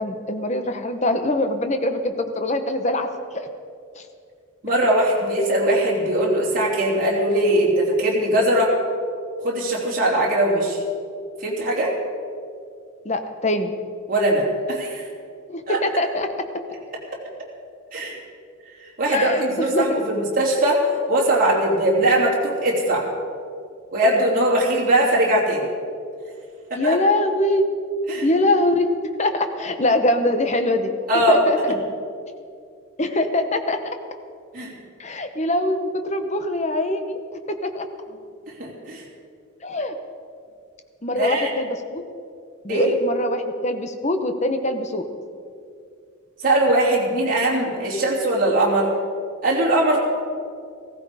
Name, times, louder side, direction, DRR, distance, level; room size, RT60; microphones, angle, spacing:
voice 1, 0.0-3.1 3.3-3.5 3.9-4.1 13.0-13.7 15.5-16.3 19.1-19.9 26.7-27.6 28.2-28.9 29.2-31.6 33.0-33.8 35.0-37.9 39.6-39.9 41.0-42.0 42.6-45.0, left 1 dB, 30° left, 7 dB, 1.0 m, -23 dB
voice 2, 4.6-8.7 9.4-10.8 11.4-11.9 14.1-15.0 15.7-15.8 17.9-18.2 18.8-20.8 21.1-23.1 23.9-25.7 26.7-26.9 28.1-28.3 31.1-31.4 34.5-34.7 38.6-39.0 41.2-41.5 42.7-42.9 46.4-48.9 49.4-50.0, right 1 dB, 40° right, -4 dB, 3.2 m, -20 dB
15.5 x 15.5 x 5.0 m, 2.4 s
head